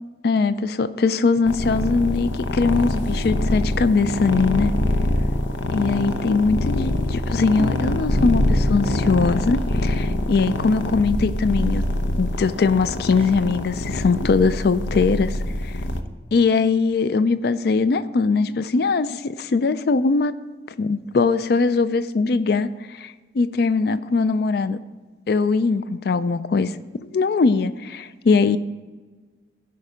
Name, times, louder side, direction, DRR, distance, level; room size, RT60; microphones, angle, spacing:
voice 1, 0.2-4.7 5.7-11.8 12.2-15.8 16.3-20.4 20.8-24.8 25.3-26.8 27.1-28.6, left 4 dB, 55° left, 14 dB, 0.4 m, -21 dB
sound 1, 1.4-16.0, left 1 dB, 85° left, 0.8 m, -24 dB
sound 2, 7.0-13.4 13.9-14.0, right 1 dB, 30° right, 0.5 m, -36 dB
15.5 x 5.4 x 5.0 m, 1.4 s
head